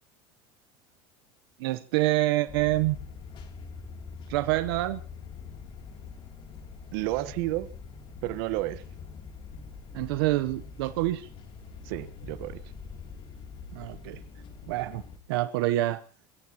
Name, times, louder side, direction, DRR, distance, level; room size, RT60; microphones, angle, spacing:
voice 1, 1.6-3.0 4.3-5.0 9.9-11.3 13.7-14.2 14.7-15.0 15.3-16.0, right 17 dB, 85° right, 1.0 m, -26 dB
sound 1, 2.5-15.2, left 5 dB, 40° left, 3.2 m, -44 dB
voice 2, 6.9-7.7 8.2-8.8 11.8-12.6, right 17 dB, 70° right, 1.3 m, -31 dB
28.0 x 15.5 x 3.0 m
cardioid pair, 145°, 12 cm